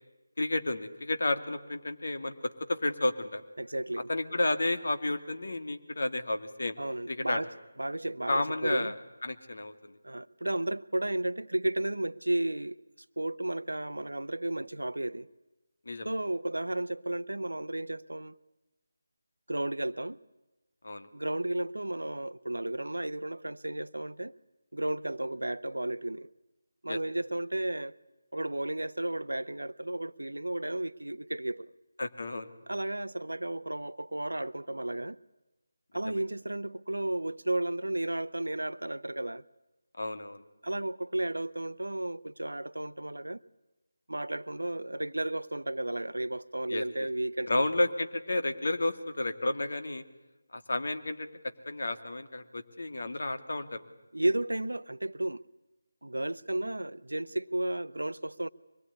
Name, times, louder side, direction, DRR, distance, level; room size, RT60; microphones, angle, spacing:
voice 1, 0.4-2.3 2.7-3.4 4.1-6.7 7.1-7.4 8.3-9.0 9.2-9.7 15.9-16.1 20.8-21.1 26.9-27.0 32.0-32.5 36.1-36.2 40.0-40.4 46.7-46.8 47.5-50.0 50.5-51.3 51.7-53.8, left 2 dB, 60° left, 2.5 m, -31 dB
voice 2, 3.6-4.1 6.8-7.5 7.8-8.9 10.0-12.7 13.2-15.3 16.0-18.3 19.5-20.2 21.1-24.3 24.7-26.3 26.8-28.0 28.3-31.7 32.7-35.2 35.9-39.4 40.6-43.4 44.1-47.5 54.1-55.4 56.0-58.5, right 1 dB, 80° right, 0.8 m, -33 dB
24.0 x 21.0 x 9.7 m
figure-of-eight pair, 160°, 0 cm